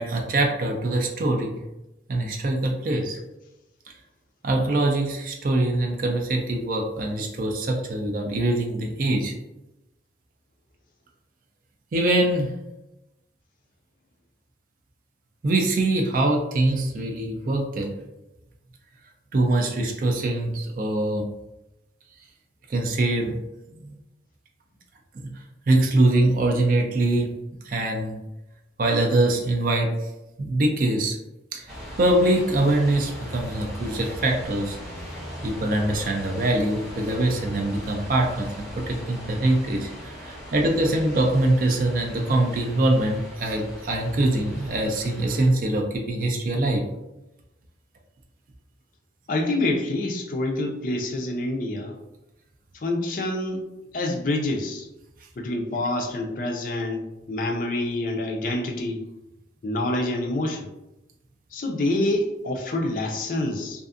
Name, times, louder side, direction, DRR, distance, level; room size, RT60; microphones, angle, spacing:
voice 1, 0.0-1.6 2.1-3.2 4.4-9.3 11.9-12.5 15.4-17.9 19.3-21.2 22.7-23.4 23.8-24.0 25.1-25.3 25.7-27.3 27.7-28.2 28.8-29.9 30.4-31.2 31.5-31.6 32.0-34.8 35.4-46.8, right 2 dB, 50° right, 1 dB, 0.4 m, -23 dB
sound 1, 31.7-45.5, equal, ahead, 1.0 m, -39 dB
voice 2, 49.3-52.0 52.8-53.6 53.9-54.9 55.4-59.0 59.6-60.7 61.5-63.9, left 1 dB, 45° left, 2 dB, 0.4 m, -27 dB
2.5 x 2.4 x 2.4 m, 0.94 s
head